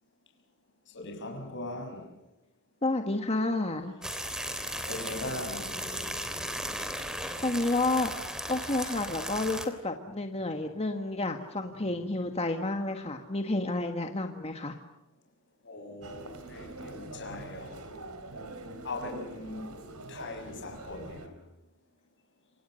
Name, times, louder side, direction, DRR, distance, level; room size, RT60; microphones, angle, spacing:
voice 1, 0.9-2.1 4.9-6.1 15.6-17.9 18.8-19.7 20.1-21.3, left 2 dB, 55° left, 6.6 m, -40 dB
voice 2, 2.8-3.9 7.2-8.1 8.5-14.8, left 2 dB, 30° left, 1.6 m, -30 dB
sound 1, 4.0-9.7, equal, 5° right, 3.2 m, -36 dB
Human voice, 16.0-21.3, right 2 dB, 85° right, 4.2 m, -44 dB
28.5 x 26.5 x 6.5 m
head